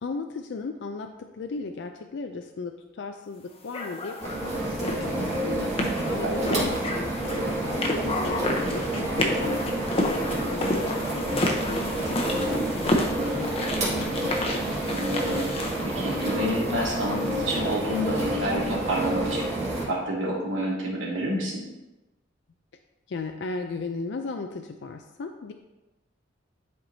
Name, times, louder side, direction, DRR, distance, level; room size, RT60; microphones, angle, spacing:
voice 1, 0.0-9.7 10.0-14.3 23.1-25.5, left 4 dB, 60° left, 5 dB, 0.4 m, -36 dB
sound 1, 3.7-17.8, left 1 dB, 30° left, 0.8 m, -31 dB
sound 2, 4.2-19.8, right 1 dB, 35° right, 2.1 m, -29 dB
voice 2, 6.2-6.7 14.9-19.5 19.8-21.6, equal, 85° right, -4 dB, 1.9 m, -29 dB
10.5 x 4.4 x 2.7 m, 1.1 s
head